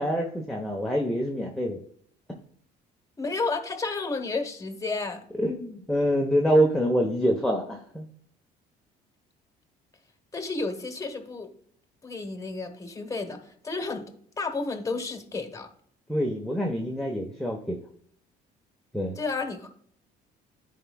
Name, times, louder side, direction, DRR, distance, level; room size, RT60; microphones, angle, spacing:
voice 1, 0.0-1.8 5.4-8.1 16.1-17.8 18.9-19.2, equal, ahead, 0 dB, 1.0 m, -26 dB
voice 2, 3.2-5.2 10.3-11.5 12.0-14.1 14.4-15.7 19.2-19.8, left 3 dB, 20° left, 6 dB, 1.3 m, -31 dB
13.5 x 4.7 x 2.3 m, 0.63 s
cardioid pair, 110°, 17 cm